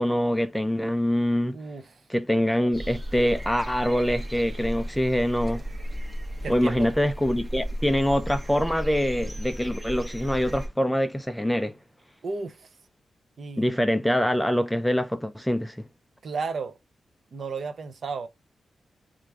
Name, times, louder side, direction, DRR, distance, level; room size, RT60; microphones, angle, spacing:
voice 1, 0.0-1.6 2.1-5.6 6.5-11.8 13.6-15.9, equal, 5° left, 0.3 m, -24 dB
voice 2, 1.5-1.8 6.4-6.9 12.2-12.7 13.4-13.7 16.2-16.7 17.3-18.3, right 4 dB, 50° right, 0.5 m, -33 dB
sound 1, 2.7-10.7, equal, 20° right, 0.8 m, -34 dB
4.6 x 2.5 x 3.3 m
wide cardioid pair, 170°, 0 cm